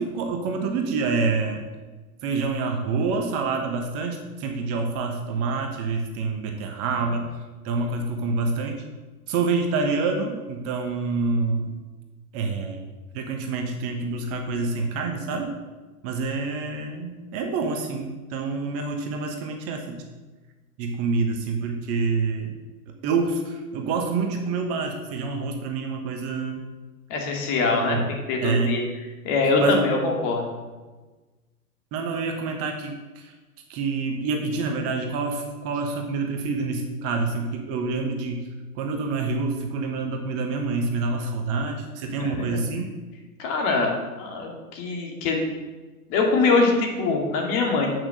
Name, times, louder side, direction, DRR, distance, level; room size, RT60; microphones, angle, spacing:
voice 1, 0.0-1.7 2.2-7.3 7.6-8.8 9.3-11.7 12.3-12.8 13.1-15.5 16.0-20.0 20.8-22.5 23.0-26.6 27.8-28.0 28.4-28.8 29.6-29.8 31.9-33.3 33.7-38.5 38.8-42.9, right 4 dB, 30° right, 3 dB, 1.2 m, -27 dB
voice 2, 27.1-28.0 28.3-28.8 29.2-30.5 42.2-42.7 43.4-43.9 44.2-45.5 46.1-47.9, left 3 dB, 40° left, 1 dB, 2.5 m, -23 dB
8.7 x 6.2 x 6.3 m, 1.2 s
hypercardioid pair, 115°, 45 cm